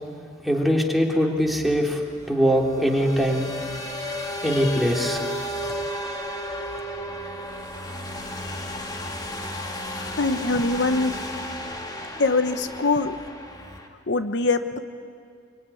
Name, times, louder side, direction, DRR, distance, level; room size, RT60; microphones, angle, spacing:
voice 1, 0.4-2.0 2.3-3.5 4.4-5.2, equal, ahead, -1 dB, 3.0 m, -22 dB
sound 1, 1.5-13.9, left 1 dB, 20° left, 2.2 m, -33 dB
voice 2, 4.4-4.8 8.4-9.1 9.9-11.1 12.2-13.2 14.1-14.8, left 3 dB, 70° left, 9 dB, 1.0 m, -24 dB
25.0 x 23.5 x 9.8 m, 2.2 s
head